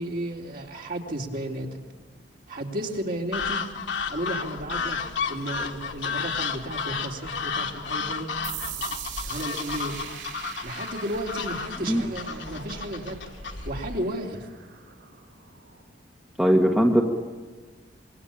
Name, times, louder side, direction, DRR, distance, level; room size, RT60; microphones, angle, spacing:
voice 1, 0.0-1.8 2.5-3.7 4.1-5.0 5.2-8.3 9.2-10.1 10.6-13.2 13.6-14.5, right 1 dB, 50° right, 0 dB, 3.7 m, -33 dB
sound 1, 3.3-14.0, left 5 dB, 70° left, 1.7 m, -32 dB
sound 2, 8.4-15.8, right 9 dB, 70° right, 5.0 m, -42 dB
voice 2, 16.4-17.0, equal, 5° right, 1 dB, 1.8 m, -19 dB
26.0 x 22.0 x 8.7 m, 1.4 s
head